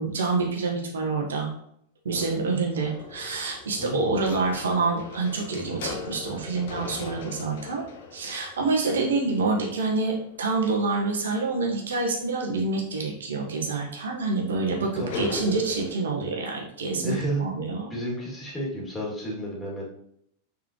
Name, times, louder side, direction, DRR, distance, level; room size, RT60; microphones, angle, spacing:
voice 1, 0.0-1.5 2.0-7.8 8.1-17.9, right 3 dB, 65° right, -1 dB, 1.5 m, -27 dB
sound 1, 2.1-11.1 14.0-14.1 14.5-15.9, left 4 dB, 55° left, 1.0 m, -40 dB
voice 2, 3.8-4.1 15.0-15.2 17.0-17.5 17.9-19.8, right 1 dB, 10° left, -4 dB, 2.8 m, -31 dB
7.4 x 5.5 x 3.2 m, 0.70 s
figure-of-eight pair, 90°, 0 cm